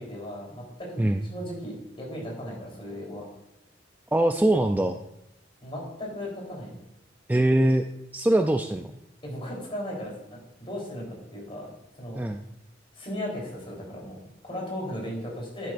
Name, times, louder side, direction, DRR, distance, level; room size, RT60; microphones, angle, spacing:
voice 1, 0.0-3.3 5.6-6.8 9.2-11.7 12.0-12.2 12.9-15.7, equal, 30° left, -2 dB, 3.8 m, -36 dB
voice 2, 4.1-5.0 7.3-7.8 8.1-8.9 12.1-12.4, right 1 dB, 10° right, 5 dB, 0.4 m, -22 dB
11.0 x 10.5 x 2.6 m, 0.85 s
head